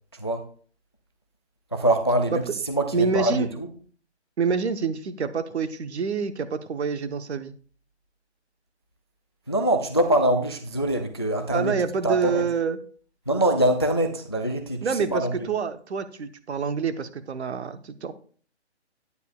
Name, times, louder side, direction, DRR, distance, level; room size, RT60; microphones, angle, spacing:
voice 1, 1.7-3.7 9.5-11.7 12.0-12.4 13.3-15.5, right 1 dB, 25° left, 8 dB, 0.3 m, -24 dB
voice 2, 2.9-3.5 4.4-7.5 11.5-12.8 14.8-18.1, right 5 dB, 70° right, 11 dB, 1.0 m, -27 dB
9.6 x 9.4 x 2.3 m, 0.43 s
hypercardioid pair, 155°, 34 cm